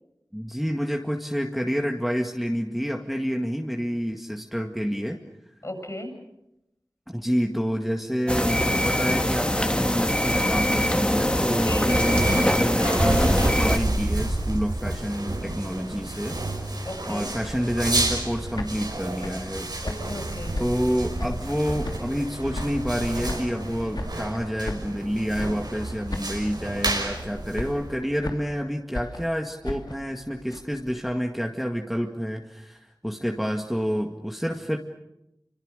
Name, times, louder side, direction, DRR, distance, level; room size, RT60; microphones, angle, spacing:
voice 1, 0.3-5.2 5.5-5.6 7.1-16.4 16.7-19.7 20.6-34.8, equal, ahead, 2 dB, 2.0 m, -28 dB
voice 2, 5.6-6.1 11.5-12.1 16.8-17.3 19.8-20.6, left 1 dB, 45° left, 5 dB, 7.8 m, -35 dB
sound 1, 8.3-13.8, equal, 15° left, 2.3 m, -23 dB
sound 2, 10.4-28.2, right 2 dB, 90° right, 5.5 m, -30 dB
sound 3, 18.3-21.6 21.8-23.0 23.3-25.1 25.3-25.8 26.1-26.6 26.8-27.3 27.5-28.6 28.9-31.1, left 2 dB, 90° left, 2.7 m, -36 dB
28.5 x 25.5 x 6.6 m, 0.87 s
wide cardioid pair, 50°, 7 cm